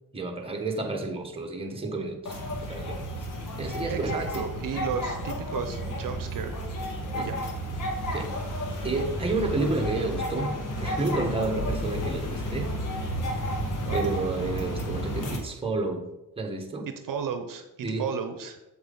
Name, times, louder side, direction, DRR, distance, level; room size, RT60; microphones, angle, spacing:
voice 1, 0.1-3.0 3.6-4.5 7.1-7.3 8.1-8.3 8.8-12.7 13.2-13.4 13.9-16.1 16.4-16.9 17.8-18.1, right 3 dB, 15° right, 3 dB, 1.4 m, -30 dB
sound 1, 2.3-15.4, equal, 60° left, 1.9 m, -32 dB
voice 2, 3.9-6.6 7.1-7.4 13.8-14.0 17.0-17.7 18.0-18.6, right 7 dB, 65° right, 7 dB, 0.8 m, -33 dB
7.7 x 7.5 x 4.0 m, 0.95 s
cardioid pair, 105°, 35 cm